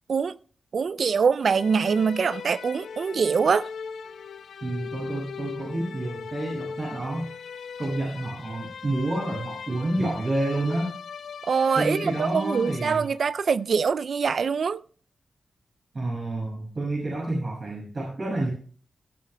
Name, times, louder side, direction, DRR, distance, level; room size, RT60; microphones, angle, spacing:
voice 1, 0.7-3.7 11.4-14.8, right 6 dB, 70° right, 0.4 m, -24 dB
sound 1, 1.4-13.5, left 6 dB, 80° left, 0.8 m, -39 dB
voice 2, 4.6-7.3 7.8-10.9 11.7-13.1 15.9-18.5, right 2 dB, 50° right, 6.3 m, -29 dB
18.5 x 12.0 x 2.2 m
supercardioid pair, 45°, 0 cm